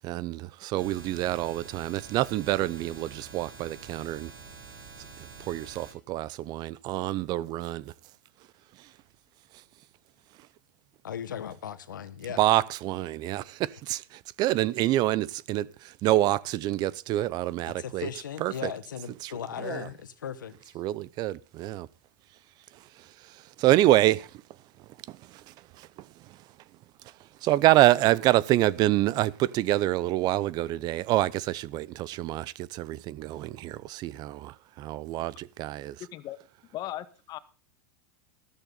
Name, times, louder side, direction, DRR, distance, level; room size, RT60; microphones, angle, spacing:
voice 1, 0.0-4.3 5.5-7.9 12.4-18.1 18.4-18.7 19.2-19.3 19.6-19.9 20.8-21.9 23.6-24.3 25.1-25.2 25.8-25.9 27.4-36.0, right 15 dB, 40° right, 0.7 m, -26 dB
sound 1, 0.8-5.9, right 5 dB, 80° right, 6.6 m, -47 dB
voice 2, 11.0-12.4 17.7-20.8, left 8 dB, 85° left, 1.7 m, -37 dB
voice 3, 36.0-36.4 36.7-37.4, left 13 dB, 40° left, 1.7 m, -37 dB
14.5 x 13.0 x 4.1 m
hypercardioid pair, 105°, 10 cm